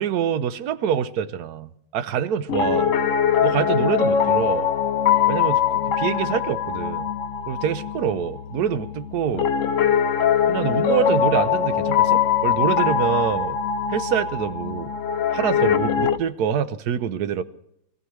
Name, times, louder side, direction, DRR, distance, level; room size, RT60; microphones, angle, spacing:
voice 1, 0.0-2.9 3.4-4.7 5.3-7.1 7.5-9.5 10.5-13.6 13.9-14.9 15.3-17.4, right 8 dB, 60° right, 13 dB, 1.1 m, -25 dB
Piano, 2.5-16.2, left 8 dB, 90° left, 0.6 m, -22 dB
24.5 x 15.0 x 3.2 m, 0.75 s
omnidirectional pair, 2.3 m